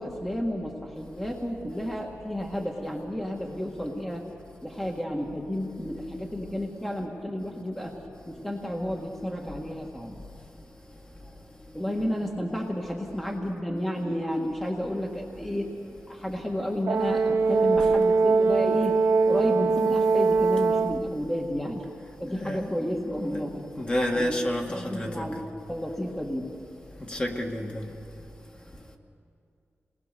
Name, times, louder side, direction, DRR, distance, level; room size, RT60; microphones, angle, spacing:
voice 1, 0.0-4.2 4.6-7.9 8.3-10.2 11.7-15.8 16.1-21.8 22.2-23.6 24.1-24.4 24.7-26.5, equal, 5° left, 0 dB, 1.6 m, -32 dB
Brass instrument, 16.9-21.1, right 4 dB, 75° right, 1.5 m, -22 dB
voice 2, 22.3-22.7 23.2-23.4 23.8-25.3 27.0-27.9 28.7-28.8, left 1 dB, 25° left, 1 dB, 2.0 m, -30 dB
28.0 x 20.0 x 6.8 m, 2.4 s
wide cardioid pair, 130°, 5 cm